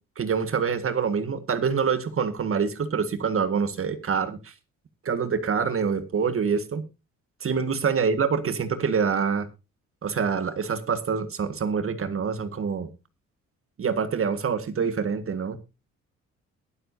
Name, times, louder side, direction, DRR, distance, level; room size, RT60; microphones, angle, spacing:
voice 1, 0.2-4.5 5.0-6.8 7.4-9.5 10.0-12.9 13.8-15.6, right 6 dB, 45° right, 11 dB, 1.7 m, -26 dB
21.5 x 7.9 x 2.7 m, 0.28 s
cardioid pair, 90°, 30 cm